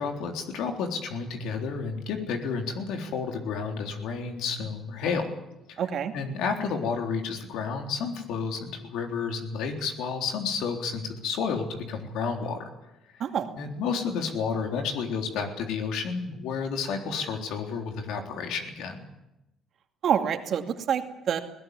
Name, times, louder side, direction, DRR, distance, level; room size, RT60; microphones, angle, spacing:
voice 1, 0.0-5.3 5.7-5.8 6.1-12.6 13.6-19.0, left 5 dB, 80° left, 3 dB, 3.7 m, -31 dB
voice 2, 5.8-6.1 13.2-13.5 20.0-21.4, right 8 dB, 60° right, 6 dB, 2.4 m, -27 dB
20.5 x 17.5 x 9.7 m, 0.94 s
supercardioid pair, 70°, 0 cm